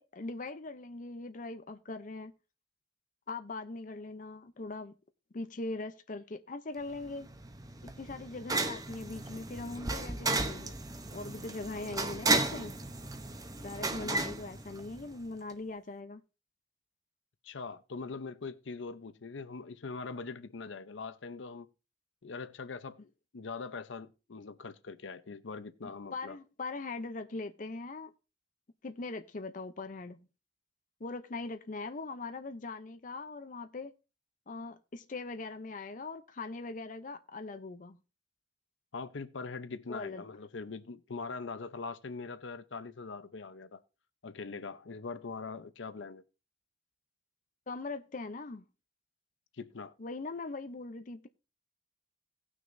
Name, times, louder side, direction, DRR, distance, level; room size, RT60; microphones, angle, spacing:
voice 1, 0.0-2.3 3.3-4.9 5.3-7.3 7.8-10.8 11.1-12.7 13.6-16.2 26.1-28.1 28.8-30.3 31.0-33.9 34.5-38.0 39.9-40.2 47.7-48.6 50.0-51.3, left 3 dB, 45° left, 0.6 m, -41 dB
sound 1, 6.9-15.3, right 2 dB, 20° right, 0.7 m, -34 dB
voice 2, 17.4-21.7 22.2-23.0 23.3-26.4 38.9-43.8 44.2-46.2 49.6-49.9, left 4 dB, 85° left, 0.7 m, -42 dB
18.0 x 6.2 x 2.6 m
head